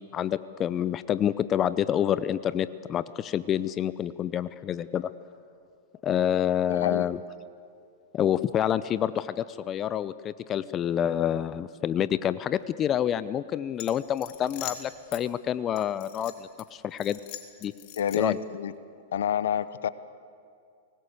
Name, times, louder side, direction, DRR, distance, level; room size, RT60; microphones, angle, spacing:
voice 1, 0.0-5.1 6.0-7.2 8.1-17.2 17.6-17.7 18.1-18.4, left 10 dB, 30° left, 15 dB, 0.7 m, -28 dB
voice 2, 6.7-7.0 18.0-18.7 19.1-19.9, left 9 dB, 75° left, 16 dB, 0.8 m, -28 dB
sound 1, 13.7-15.2 15.8-16.6 17.0-18.4, left 12 dB, 50° left, 2.3 m, -42 dB
24.5 x 19.5 x 8.1 m, 2.3 s
hypercardioid pair, 110°, 0 cm